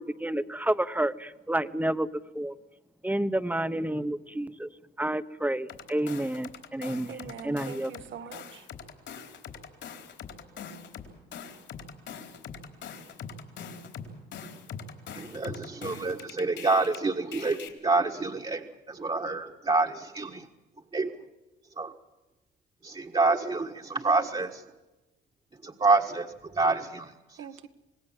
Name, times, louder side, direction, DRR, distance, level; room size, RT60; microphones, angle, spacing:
voice 1, 0.0-2.5 3.0-4.7 5.0-7.9, right 1 dB, 10° right, 1.1 m, -30 dB
sound 1, 5.7-8.0 8.3-17.0 17.3-17.7, left 6 dB, 70° left, 4.2 m, -42 dB
voice 2, 7.1-8.7 24.2-24.3 27.4-27.7, right 7 dB, 75° right, 1.8 m, -43 dB
voice 3, 15.1-20.4 20.9-21.1 21.8-21.9 22.8-24.6 25.6-27.1, right 3 dB, 25° right, 1.6 m, -27 dB
26.5 x 18.5 x 7.5 m
cardioid pair, 90°, 20 cm